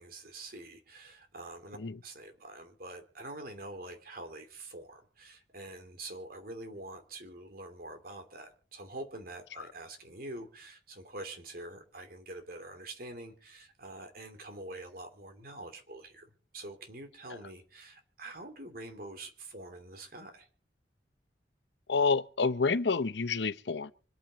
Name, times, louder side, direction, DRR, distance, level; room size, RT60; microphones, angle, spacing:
voice 1, 0.0-20.5, right 2 dB, 55° right, 2.7 m, -46 dB
voice 2, 21.9-23.9, left 4 dB, 80° left, 0.8 m, -29 dB
25.5 x 9.1 x 4.0 m
head